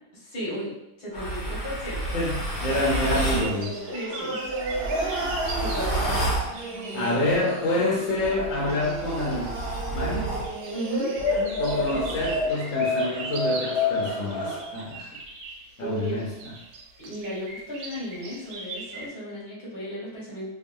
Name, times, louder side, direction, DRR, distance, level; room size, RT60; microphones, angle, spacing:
voice 1, 0.1-2.3 3.9-4.4 5.0-6.1 10.7-11.1 15.8-16.2 17.0-20.5, equal, 90° left, -8 dB, 2.1 m, -35 dB
sound 1, 1.1-3.5 4.5-6.5 8.1-10.5 11.2-14.6, left 1 dB, 40° left, 0.9 m, -29 dB
voice 2, 2.1-3.7 6.9-9.5 9.9-10.3 11.6-15.1 15.8-16.3, left 1 dB, 60° left, -5 dB, 1.2 m, -27 dB
Singing, 2.6-12.1, right 2 dB, 50° right, 0.8 m, -34 dB
sound 2, 2.6-19.1, right 3 dB, 85° right, 1.2 m, -41 dB
4.6 x 2.2 x 2.6 m, 0.90 s
omnidirectional pair, 1.6 m